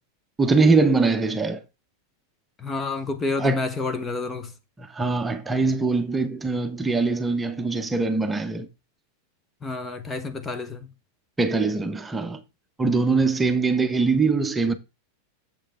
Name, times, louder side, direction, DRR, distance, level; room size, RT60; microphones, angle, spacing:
voice 1, 0.4-1.6 3.4-3.6 4.8-8.7 11.4-12.4 12.8-14.7, right 3 dB, 10° right, 0.9 m, -22 dB
voice 2, 2.6-4.5 9.6-10.9, left 3 dB, 20° left, 0.9 m, -29 dB
7.5 x 6.8 x 3.5 m
figure-of-eight pair, 90°, 0 cm